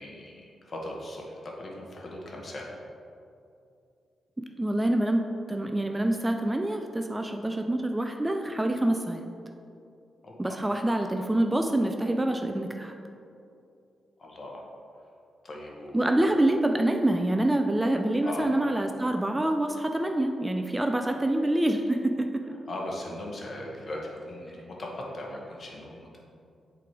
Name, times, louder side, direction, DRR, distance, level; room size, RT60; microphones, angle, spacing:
voice 1, 0.0-2.7 10.2-10.6 14.2-14.6 15.4-16.3 18.2-18.5 22.7-24.0 24.3-26.2, left 1 dB, 50° left, -2 dB, 1.4 m, -39 dB
voice 2, 4.6-9.2 10.4-12.9 15.9-22.4, right 1 dB, 15° right, 4 dB, 0.4 m, -26 dB
7.4 x 3.9 x 4.8 m, 2.6 s
cardioid pair, 65°, 0 cm